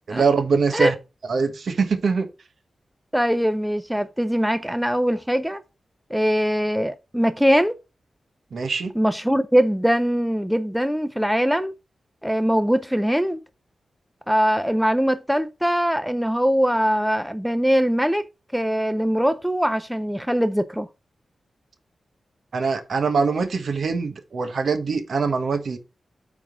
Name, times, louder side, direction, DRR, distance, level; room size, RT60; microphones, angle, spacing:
voice 1, 0.1-0.9 1.3-2.3 8.5-8.9 22.5-25.8, right 5 dB, 60° right, 1.3 m, -23 dB
voice 2, 3.1-5.6 6.1-7.8 9.0-11.7 12.2-13.4 14.3-20.9, equal, ahead, 0.5 m, -22 dB
8.9 x 3.7 x 6.0 m
wide cardioid pair, 160°, 0 cm